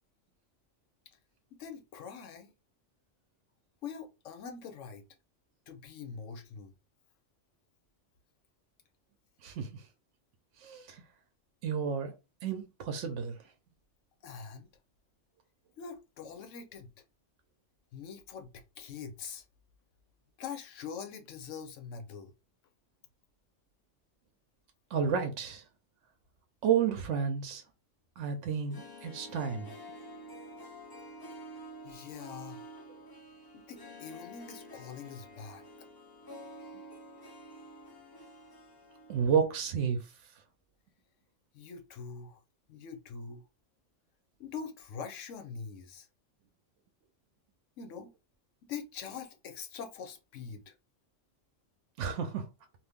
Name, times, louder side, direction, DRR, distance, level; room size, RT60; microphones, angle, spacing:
voice 1, 1.5-2.5 3.8-5.0 5.7-6.7 14.2-14.7 15.8-16.9 17.9-19.4 20.4-22.3 31.8-32.7 33.5-35.6 41.5-42.4 42.7-43.4 44.4-46.1 47.8-48.1 48.6-50.7, left 6 dB, 85° left, 1.0 m, -44 dB
voice 2, 9.4-9.8 10.6-11.0 11.6-12.1 12.4-13.4 24.9-25.6 26.6-27.6 28.2-29.7 39.1-40.0 52.0-52.5, right 7 dB, 80° right, 0.9 m, -31 dB
Harp, 28.5-39.6 39.8-39.9, equal, 40° left, 0.3 m, -49 dB
2.6 x 2.5 x 3.5 m
omnidirectional pair, 1.2 m